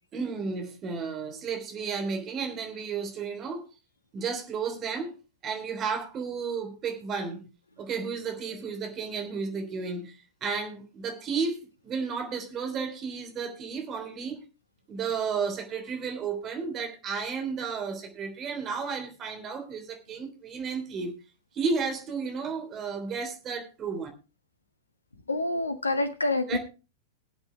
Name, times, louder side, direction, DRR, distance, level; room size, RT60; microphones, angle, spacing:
voice 1, 0.1-3.6 4.1-5.1 5.4-7.5 7.8-10.1 10.4-14.4 14.9-21.1 21.5-24.1 26.5-26.6, right 5 dB, 30° right, 3.3 m, -33 dB
voice 2, 25.3-26.6, left 2 dB, 80° left, 1.5 m, -27 dB
21.0 x 8.0 x 3.3 m
figure-of-eight pair, 95°, 0 cm